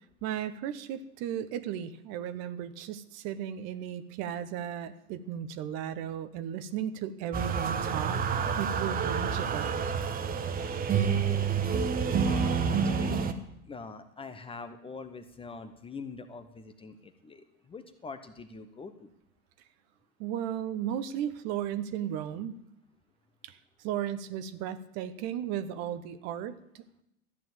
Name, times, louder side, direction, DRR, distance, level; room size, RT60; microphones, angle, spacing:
voice 1, 0.2-8.2 8.6-9.7 20.2-22.6 23.4-23.6 23.8-27.0, right 10 dB, 35° right, 12 dB, 1.0 m, -35 dB
sound 1, 7.3-13.3, right 6 dB, 20° right, 1.0 m, -28 dB
voice 2, 12.2-19.1, left 4 dB, 10° left, 9 dB, 0.9 m, -44 dB
13.5 x 9.1 x 7.2 m, 0.80 s
figure-of-eight pair, 95°, 45 cm